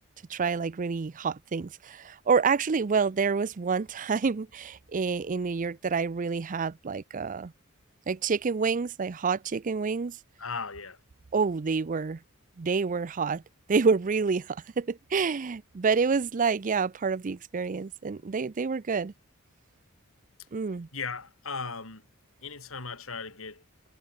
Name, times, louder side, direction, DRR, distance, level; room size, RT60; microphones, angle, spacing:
voice 1, 0.3-7.5 8.1-10.2 11.3-12.2 12.6-13.4 13.7-19.1 20.5-20.9, right 5 dB, 40° right, 0.5 m, -28 dB
voice 2, 10.4-11.0 20.9-22.0 22.4-23.6, left 4 dB, 65° left, 5.1 m, -37 dB
head